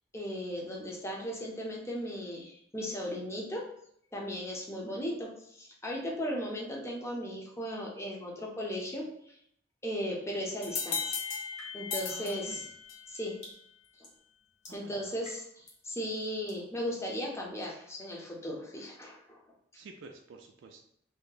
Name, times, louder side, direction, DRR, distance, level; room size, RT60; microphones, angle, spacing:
voice 1, 0.1-3.6 4.1-9.3 9.8-11.2 11.7-12.6 13.1-13.4 14.0-14.1 14.7-19.4, equal, 15° left, -2 dB, 0.6 m, -37 dB
sound 1, 10.6-13.2, left 5 dB, 85° left, 0.5 m, -36 dB
sound 2, 11.5-12.2 12.6-15.9 16.5-16.7, left 1 dB, 35° left, 0.9 m, -53 dB
voice 2, 12.1-12.6 14.7-15.1 19.8-20.8, right 3 dB, 70° right, 3 dB, 0.4 m, -50 dB
2.7 x 2.1 x 3.8 m, 0.70 s
head